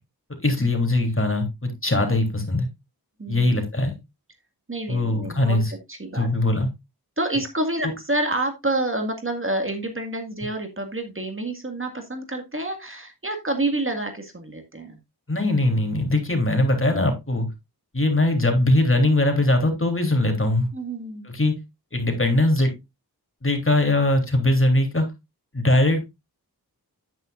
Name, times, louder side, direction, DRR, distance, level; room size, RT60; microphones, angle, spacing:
voice 1, 0.4-2.7 3.3-3.9 4.9-5.7 6.1-6.7 15.3-17.5 17.9-20.7 21.2-21.5 21.9-22.7 23.4-25.1 25.5-26.0, left 1 dB, 35° left, 3.3 m, -21 dB
voice 2, 3.2-3.6 4.7-5.6 5.9-6.3 7.2-15.0 20.7-21.3, right 2 dB, 30° right, 1.9 m, -28 dB
9.8 x 9.2 x 2.5 m
cardioid pair, 50°, 39 cm